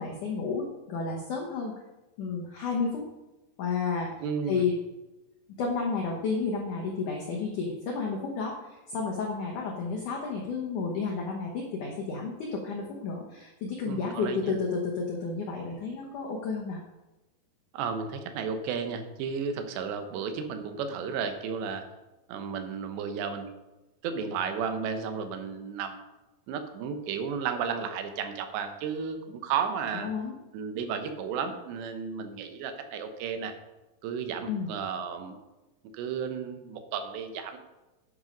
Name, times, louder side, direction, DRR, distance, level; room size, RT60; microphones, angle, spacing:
voice 1, 0.0-1.7 2.2-3.0 3.6-4.1 4.5-4.7 5.6-16.8 30.0-30.4 34.5-34.7, left 4 dB, 65° left, 0 dB, 2.1 m, -31 dB
voice 2, 4.2-4.6 13.9-14.5 17.7-21.8 22.3-23.5 24.0-26.0 26.5-30.1 30.5-33.5 34.0-35.4 35.9-37.6, right 6 dB, 85° right, 7 dB, 3.2 m, -33 dB
10.5 x 6.5 x 5.2 m, 1.1 s
omnidirectional pair, 4.9 m